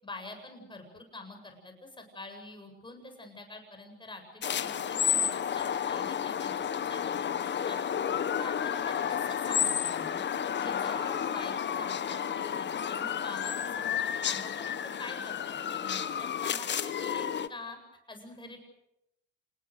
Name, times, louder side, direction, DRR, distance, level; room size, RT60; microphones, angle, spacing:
voice 1, 0.0-4.7 5.0-7.8 8.3-10.3 10.6-17.8 18.1-18.6, left 2 dB, 15° left, 5 dB, 7.8 m, -46 dB
sound 1, 4.4-17.5, left 8 dB, 35° left, 1.4 m, -31 dB
28.0 x 20.5 x 6.6 m, 0.85 s
supercardioid pair, 90°, 32 cm